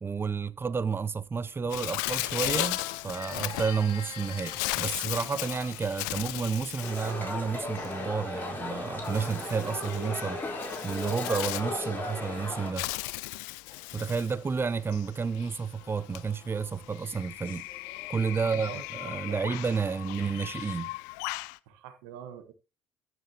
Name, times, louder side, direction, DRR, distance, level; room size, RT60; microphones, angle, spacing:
voice 1, 0.0-10.4 10.8-12.9 13.9-17.7 18.1-20.9, right 5 dB, 25° right, 0.6 m, -31 dB
Bird, 1.7-21.6, left 21 dB, 75° left, 0.4 m, -37 dB
sound 1, 2.5-5.9 6.7-7.3 7.6-9.3 10.3-13.1 13.5-19.1, left 8 dB, 60° left, 2.3 m, -48 dB
sound 2, 6.8-12.7, left 2 dB, 20° left, 4.1 m, -36 dB
voice 2, 18.4-19.6 21.7-22.5, right 9 dB, 75° right, 1.3 m, -45 dB
14.5 x 6.0 x 2.9 m
hypercardioid pair, 60°, 10 cm